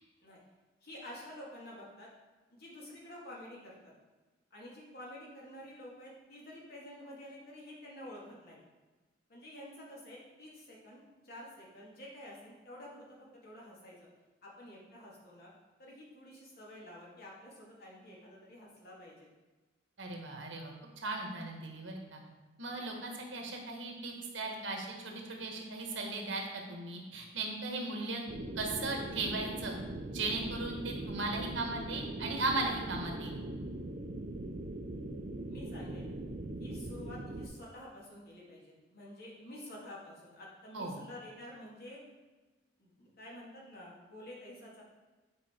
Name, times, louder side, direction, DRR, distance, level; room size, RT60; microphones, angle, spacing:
voice 1, 0.8-2.1 2.5-3.9 4.5-8.6 9.3-14.1 14.4-15.5 15.8-19.3 22.9-23.0 35.5-36.1 36.6-42.0 42.8-44.8, left 1 dB, 55° left, -4 dB, 2.1 m, -50 dB
voice 2, 20.0-20.7 21.0-22.2 22.6-28.2 28.6-29.7 30.1-33.4 40.7-41.0, right 2 dB, 80° right, 1 dB, 1.5 m, -37 dB
sound 1, 28.3-37.5, right 1 dB, 45° right, 0.6 m, -41 dB
8.7 x 4.9 x 4.4 m, 1.2 s
head